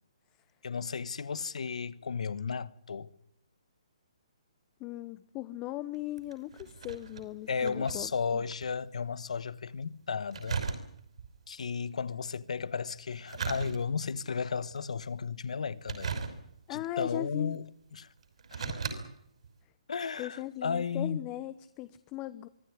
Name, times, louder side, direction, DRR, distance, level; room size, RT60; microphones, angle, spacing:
voice 1, 0.6-3.1 7.5-10.6 11.5-16.1 16.7-18.1 18.5-18.6 19.9-21.3, left 5 dB, 75° left, 1.3 m, -34 dB
voice 2, 4.8-8.4 16.7-17.6 18.6-18.7 20.2-22.5, left 15 dB, 20° left, 0.9 m, -39 dB
sound 1, 5.9-8.8 9.0-9.1 10.3-11.3 13.1-14.2 14.7-15.1 15.8-16.8 17.5-17.6 18.2-19.0 19.4-19.5, right 5 dB, 65° right, 5.8 m, -37 dB
24.5 x 15.0 x 9.9 m
hypercardioid pair, 160°, 4 cm